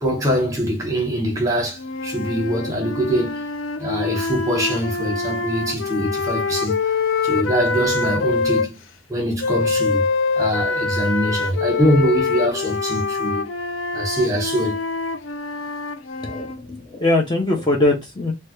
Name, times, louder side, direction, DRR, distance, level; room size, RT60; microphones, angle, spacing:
voice 1, 0.0-3.4 3.8-6.7 7.2-8.8 9.1-10.1 10.4-13.4 13.9-14.8, equal, 15° right, 0.9 m, -23 dB
sound 1, 1.7-8.7 9.4-16.6, left 4 dB, 85° left, 0.4 m, -25 dB
voice 2, 16.2-18.3, left 2 dB, 20° left, 0.5 m, -21 dB
3.3 x 2.2 x 3.0 m
head